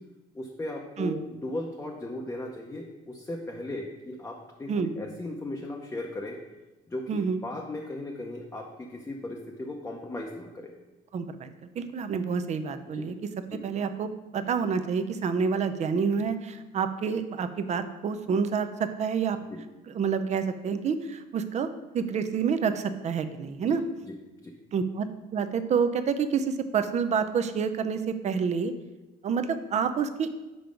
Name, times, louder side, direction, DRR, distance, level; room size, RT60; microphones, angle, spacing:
voice 1, 0.3-6.4 6.9-10.7 12.9-13.1 13.5-13.6 19.5-19.6 23.7-23.8 24.0-24.2 24.4-24.5, left 2 dB, 15° left, -1 dB, 0.7 m, -37 dB
voice 2, 7.1-7.4 11.1-11.5 11.8-13.3 13.6-19.4 19.9-21.7 21.9-23.8 24.7-28.7 29.2-30.4, right 6 dB, 40° right, 9 dB, 0.5 m, -28 dB
5.4 x 4.5 x 5.1 m, 1.1 s
cardioid pair, 110°, 17 cm